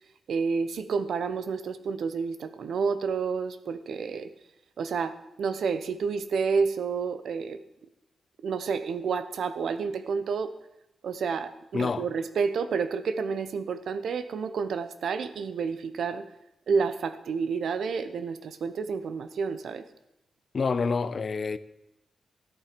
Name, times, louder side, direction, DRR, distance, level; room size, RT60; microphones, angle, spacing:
voice 1, 0.3-4.3 4.8-5.1 5.4-7.6 8.4-10.5 11.0-16.3 16.7-19.8, right 5 dB, 75° right, 0.9 m, -29 dB
voice 2, 11.7-12.1 20.5-21.6, left 4 dB, 40° left, 0.5 m, -27 dB
13.0 x 11.0 x 5.2 m
wide cardioid pair, 170°, 0 cm